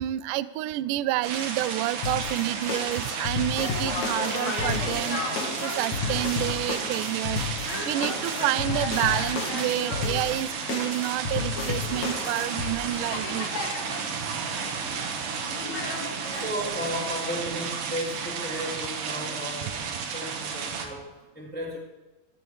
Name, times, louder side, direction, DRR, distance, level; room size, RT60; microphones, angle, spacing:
voice 1, 0.0-7.4 7.9-13.5, right 15 dB, 80° right, 16 dB, 1.9 m, -29 dB
sound 1, 1.2-20.9, right 6 dB, 65° right, 2.8 m, -33 dB
sound 2, 2.0-12.7, left 5 dB, 55° left, 2.7 m, -33 dB
sound 3, 3.0-16.6, left 3 dB, 75° left, 4.9 m, -37 dB
voice 2, 16.3-21.8, equal, 5° left, -4 dB, 2.7 m, -34 dB
21.5 x 16.0 x 3.3 m, 1.1 s
omnidirectional pair, 4.2 m